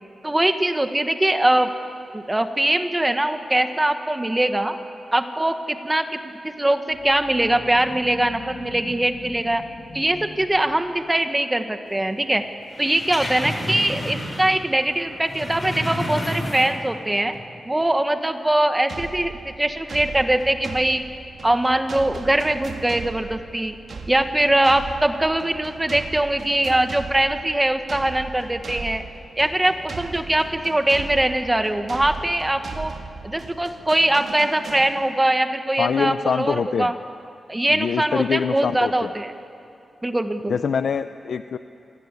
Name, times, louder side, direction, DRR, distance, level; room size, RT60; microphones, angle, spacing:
voice 1, 0.2-1.7 2.1-4.7 5.1-9.6 9.9-12.4 12.8-17.3 17.6-21.0 21.4-23.8 24.1-29.0 29.4-32.9 33.2-36.9 37.5-39.3 40.0-40.6, right 1 dB, 15° right, 7 dB, 1.4 m, -22 dB
sound 1, 6.9-11.3, left 3 dB, 55° left, 2.1 m, -41 dB
sound 2, 12.7-14.6 14.9-16.9 17.3-17.4, equal, 20° left, 5.7 m, -30 dB
sound 3, 18.9-35.3, right 4 dB, 60° right, 1.9 m, -38 dB
voice 2, 35.8-36.9 37.7-39.1 40.5-41.6, left 6 dB, 75° left, 11 dB, 0.6 m, -24 dB
27.0 x 19.0 x 9.8 m, 2.7 s
wide cardioid pair, 125°, 0 cm